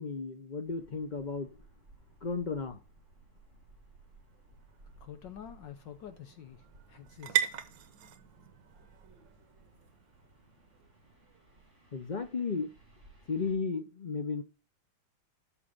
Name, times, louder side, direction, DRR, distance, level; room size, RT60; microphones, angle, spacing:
voice 1, 0.0-1.5 2.2-2.8 11.9-12.7 13.3-14.4, left 4 dB, 85° left, 0.4 m, -34 dB
sound 1, 0.6-13.5, right 2 dB, 30° right, 7.4 m, -60 dB
sound 2, 3.7-11.6, right 11 dB, 60° right, 1.7 m, -40 dB
voice 2, 5.0-7.5, left 9 dB, 65° left, 1.5 m, -48 dB
13.0 x 5.1 x 5.4 m
omnidirectional pair, 2.3 m